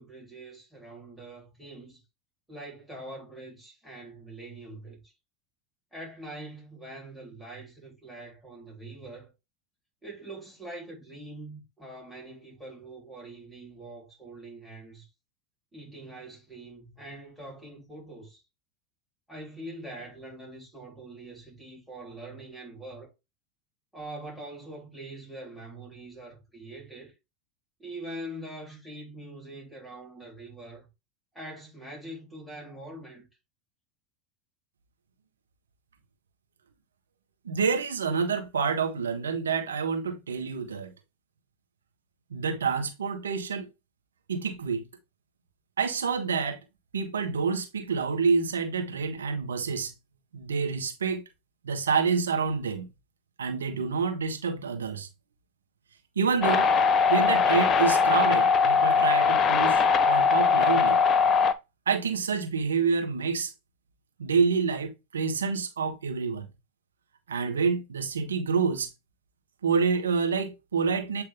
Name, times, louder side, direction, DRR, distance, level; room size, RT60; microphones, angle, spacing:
voice 1, 0.0-2.0 2.5-5.1 5.9-9.3 10.0-15.1 15.7-18.4 19.3-23.1 23.9-27.1 27.8-30.9 31.3-33.3, right 1 dB, ahead, 3.8 m, -43 dB
voice 2, 37.4-40.9 42.3-43.7 44.3-44.9 45.8-46.6 46.9-49.9 50.3-51.2 51.6-52.9 53.4-55.1 56.1-56.7 57.1-61.0 61.9-63.5 64.2-66.5 67.3-68.9 69.6-71.2, right 5 dB, 85° right, 1.5 m, -28 dB
sound 1, 56.4-61.5, left 5 dB, 35° left, 0.8 m, -21 dB
8.1 x 3.3 x 3.6 m
hypercardioid pair, 85°, 0 cm